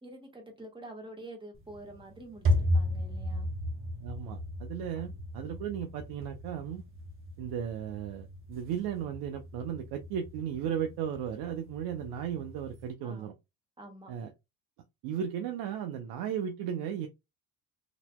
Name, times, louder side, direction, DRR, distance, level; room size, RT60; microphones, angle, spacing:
voice 1, 0.0-2.4 2.7-3.5 4.9-5.1 13.0-13.3 13.8-14.1, right 1 dB, 15° right, 1.4 m, -47 dB
sound 1, 1.5-12.9, left 1 dB, 35° right, 1.0 m, -35 dB
voice 2, 4.0-6.8 7.4-13.3 14.1-14.3 15.0-17.1, right 9 dB, 70° right, 0.7 m, -35 dB
4.0 x 2.8 x 2.2 m
cardioid pair, 100°, 38 cm